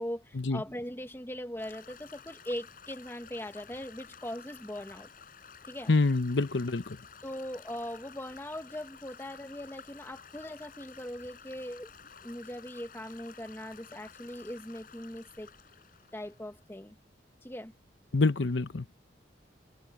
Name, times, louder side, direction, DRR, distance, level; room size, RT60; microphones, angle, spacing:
voice 1, 0.0-5.1 5.6-5.9 7.2-11.9 12.2-15.5 16.1-17.0 17.4-17.7, left 1 dB, 15° left, 1.4 m, -40 dB
Stream / Gurgling / Trickle dribble, 1.6-16.7, left 7 dB, 50° left, 6.4 m, -53 dB
voice 2, 5.9-7.0 18.1-18.8, left 3 dB, 75° left, 0.9 m, -26 dB
head